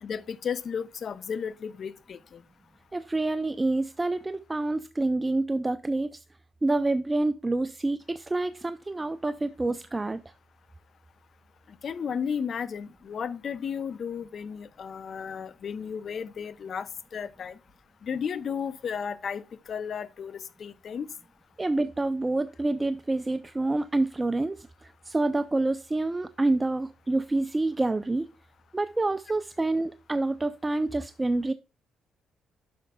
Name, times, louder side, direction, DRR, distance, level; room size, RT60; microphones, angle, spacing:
voice 1, 0.0-2.4 11.8-17.6 18.0-21.1, left 7 dB, 55° left, 0.5 m, -34 dB
voice 2, 2.9-6.2 6.6-10.2 21.6-28.3 28.7-31.5, right 2 dB, 20° right, 0.3 m, -27 dB
10.0 x 6.4 x 2.2 m
cardioid pair, 90°, 0 cm